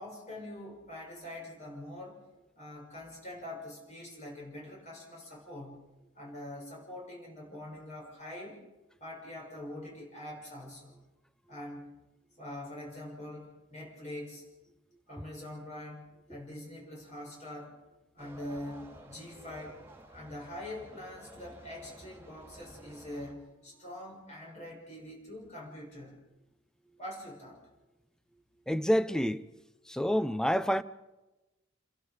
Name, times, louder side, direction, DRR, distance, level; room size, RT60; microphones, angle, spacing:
voice 1, 0.0-2.2 2.6-5.9 6.1-8.6 9.0-11.0 11.5-11.9 12.4-14.4 15.1-17.7 18.1-19.8 20.1-26.2 27.0-27.6, left 1 dB, 35° left, 6.4 m, -44 dB
sound 1, 18.2-23.3, right 1 dB, 15° right, 3.0 m, -52 dB
voice 2, 28.7-29.4 29.9-30.8, equal, 5° left, 0.6 m, -27 dB
28.5 x 22.0 x 5.0 m
head